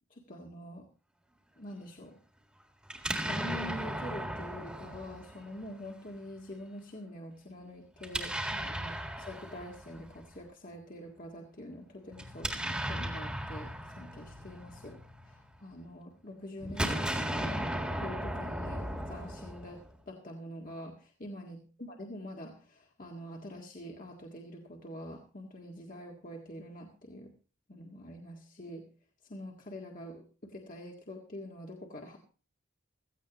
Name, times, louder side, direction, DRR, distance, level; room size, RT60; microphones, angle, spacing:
voice 1, 0.1-0.9 1.6-2.2 3.2-9.0 9.3-17.6 18.0-27.3 27.7-28.9 29.2-32.2, left 1 dB, 40° left, 0 dB, 1.8 m, -45 dB
Explosion, 2.9-5.9 8.0-10.2 12.1-15.6 16.6-20.0, right 1 dB, 5° right, 1.8 m, -36 dB
16.0 x 15.0 x 3.0 m, 0.36 s
head